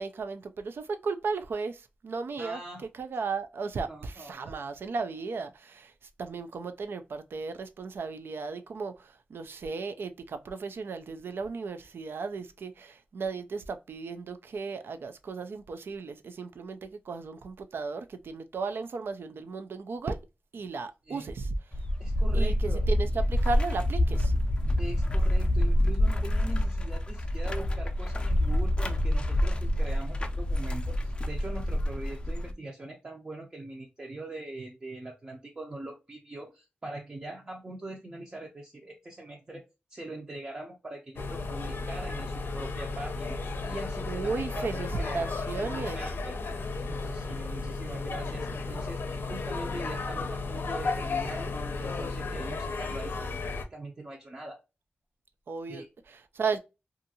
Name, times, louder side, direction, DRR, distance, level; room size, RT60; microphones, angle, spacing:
voice 1, 0.0-2.6 3.0-5.9 6.2-20.2 20.5-21.5 22.3-24.3 44.1-46.0 55.5-56.6, right 4 dB, 85° right, 0.4 m, -35 dB
voice 2, 2.4-2.8 3.9-4.4 21.1-21.3 22.0-22.8 24.8-39.6 39.9-46.4 46.9-49.0 49.3-54.6 55.7-55.9, right 2 dB, 30° right, 0.5 m, -42 dB
sound 1, 21.7-32.5, left 1 dB, 25° left, 0.4 m, -27 dB
sound 2, 41.2-53.6, left 3 dB, 80° left, 0.5 m, -34 dB
2.7 x 2.4 x 2.6 m
wide cardioid pair, 130°, 4 cm